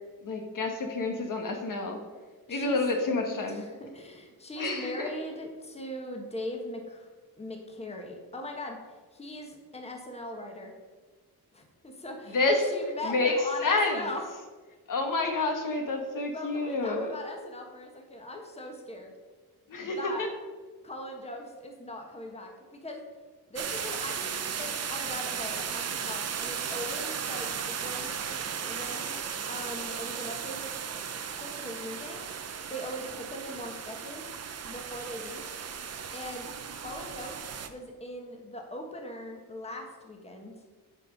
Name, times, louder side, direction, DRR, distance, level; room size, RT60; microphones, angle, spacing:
voice 1, 0.2-2.0 2.5-3.6 4.6-5.1 12.3-12.7 13.1-13.3 13.6-14.0 14.9-17.1 19.7-20.3, left 3 dB, 55° left, 4 dB, 1.4 m, -28 dB
voice 2, 2.5-2.8 3.3-7.1 7.4-10.7 11.5-14.4 16.3-19.1 19.7-20.3 20.8-22.5 22.8-23.0 23.5-29.2 29.5-30.7 31.3-32.3 32.7-34.3 34.6-35.4 36.1-40.5, left 1 dB, 15° left, 2 dB, 1.3 m, -40 dB
sound 1, 23.6-37.7, right 7 dB, 40° right, 0.7 m, -36 dB
10.5 x 5.5 x 5.2 m, 1.4 s
wide cardioid pair, 135°, 38 cm